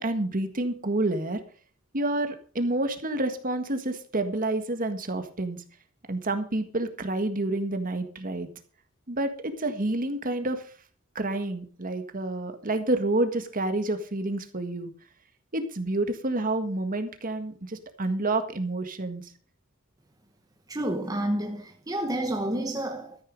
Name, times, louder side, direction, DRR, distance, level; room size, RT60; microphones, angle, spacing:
voice 1, 0.0-1.4 1.9-5.6 6.1-8.5 9.1-10.6 11.1-14.9 15.5-19.3, right 2 dB, 40° right, 1.7 m, -29 dB
voice 2, 20.7-23.2, right 1 dB, 20° right, 1.1 m, -29 dB
13.5 x 9.6 x 5.3 m
head